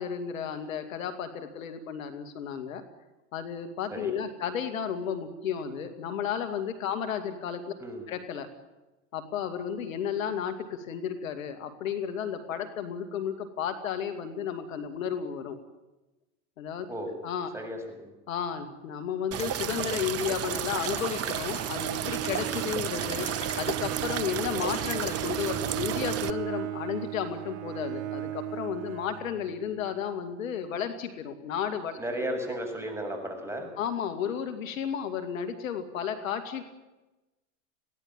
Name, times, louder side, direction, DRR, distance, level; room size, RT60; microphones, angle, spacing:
voice 1, 0.0-2.8 3.3-7.6 8.1-8.5 9.1-15.6 16.6-16.9 17.2-17.5 18.3-23.3 23.6-32.0 33.8-36.6, left 8 dB, 80° left, 8 dB, 2.4 m, -33 dB
voice 2, 17.5-18.1 32.0-33.7, equal, 5° right, 2 dB, 7.3 m, -34 dB
sound 1, 19.3-26.3, right 10 dB, 35° right, 1.1 m, -32 dB
sound 2, 19.4-20.4 20.8-21.9 22.2-24.0 24.6-25.5, left 3 dB, 15° left, 3.9 m, -44 dB
Bowed string instrument, 21.5-29.7, right 13 dB, 80° right, 0.8 m, -36 dB
21.5 x 17.0 x 9.0 m, 1.0 s
hypercardioid pair, 90°, 40 cm